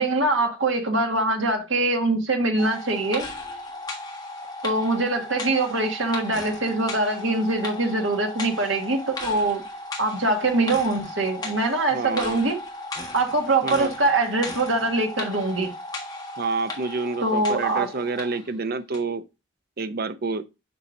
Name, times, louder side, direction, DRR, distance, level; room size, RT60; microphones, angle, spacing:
voice 1, 0.0-3.3 4.6-9.6 10.0-12.6 13.1-15.7 17.2-17.9, right 2 dB, 65° right, 1.8 m, -23 dB
sound 1, 2.6-18.5 18.9-19.0, left 2 dB, 20° left, 1.5 m, -36 dB
voice 2, 11.9-12.4 13.6-13.9 16.4-19.2 19.8-20.5, right 3 dB, 50° right, 0.6 m, -28 dB
6.9 x 5.5 x 2.6 m
head